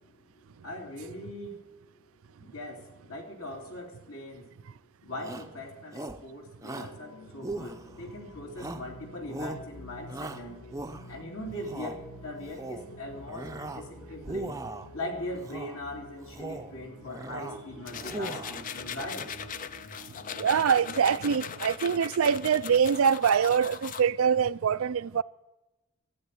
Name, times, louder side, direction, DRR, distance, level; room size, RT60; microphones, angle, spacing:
voice 1, 0.6-1.6 2.4-4.4 5.0-10.6 11.1-14.6 14.9-19.3, left 1 dB, 75° left, 3.0 m, -40 dB
Shout, 5.2-5.5 5.9-6.3 6.6-7.0 7.4-8.1 8.6-8.9 9.3-9.7 10.1-11.2 11.6-12.0 12.4-12.9 13.3-13.9 14.2-14.9 15.4-15.8 16.2-16.7 17.1-17.6 17.9-18.6, right 2 dB, 15° right, 0.6 m, -39 dB
sound 1, 6.7-21.6, equal, 90° left, 2.0 m, -49 dB
sound 2, 17.9-24.0, left 7 dB, 35° left, 0.4 m, -39 dB
voice 2, 20.4-25.2, right 7 dB, 70° right, 0.4 m, -24 dB
12.5 x 8.9 x 8.4 m
head